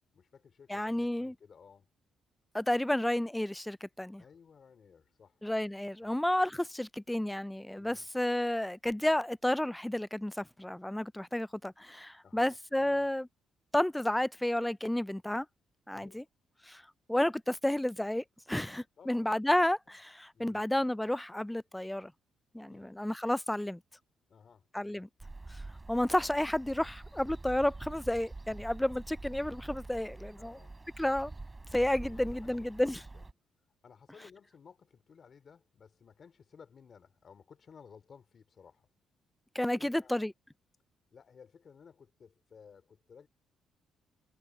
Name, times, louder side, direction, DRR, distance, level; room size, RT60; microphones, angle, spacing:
voice 1, 0.1-1.9 4.2-5.4 6.0-6.1 7.7-8.1 12.2-13.1 15.9-16.2 19.0-19.6 19.9-20.0 20.3-20.6 22.7-23.0 24.3-25.1 30.4-30.8 32.0-33.3 33.8-38.9 39.7-40.1 41.1-43.3, left 6 dB, 50° left, 2.7 m, -57 dB
voice 2, 0.7-1.3 2.5-4.2 5.4-13.3 13.7-15.5 15.9-16.2 16.7-16.8 17.1-22.1 22.5-23.8 24.7-25.1 25.5-25.6 25.9-30.6 31.0-31.3 31.7-33.0 39.5-40.3, left 1 dB, 5° left, 0.3 m, -31 dB
sound 1, 25.2-33.3, right 2 dB, 20° right, 4.5 m, -46 dB
cardioid pair, 90°, 0 cm